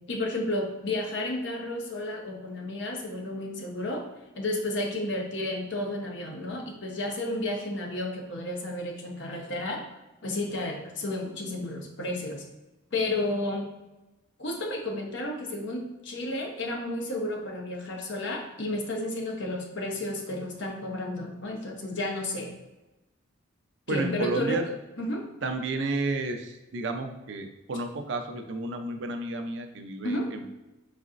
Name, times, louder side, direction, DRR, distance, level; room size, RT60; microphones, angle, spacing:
voice 1, 0.1-4.1 4.4-9.8 10.2-12.4 12.9-13.7 14.4-22.5 23.9-24.6 25.0-25.2 30.0-30.3, left 1 dB, 60° left, 1 dB, 0.8 m, -32 dB
voice 2, 23.9-24.6 25.4-30.5, right 2 dB, 65° right, 6 dB, 0.4 m, -32 dB
4.0 x 3.8 x 2.5 m, 1.0 s
head